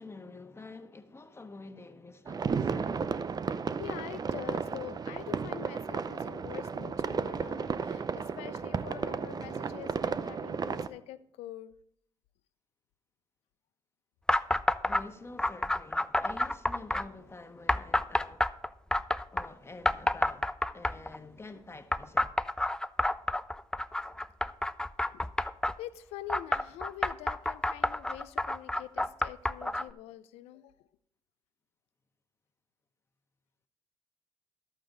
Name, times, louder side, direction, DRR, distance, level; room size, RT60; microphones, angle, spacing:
voice 1, 0.0-3.2 14.9-18.5 19.3-22.3, left 3 dB, 25° left, 1.2 m, -48 dB
sound 1, 2.3-10.9, right 5 dB, 40° right, 0.6 m, -33 dB
voice 2, 3.8-11.8 25.1-25.2 25.8-30.9, left 13 dB, 85° left, 0.4 m, -45 dB
sound 2, 14.3-15.0 15.4-17.1 17.7-19.5 19.9-21.2 21.9-25.7 26.3-29.9, left 1 dB, 5° left, 0.4 m, -29 dB
12.0 x 8.8 x 3.9 m
supercardioid pair, 60°, 10 cm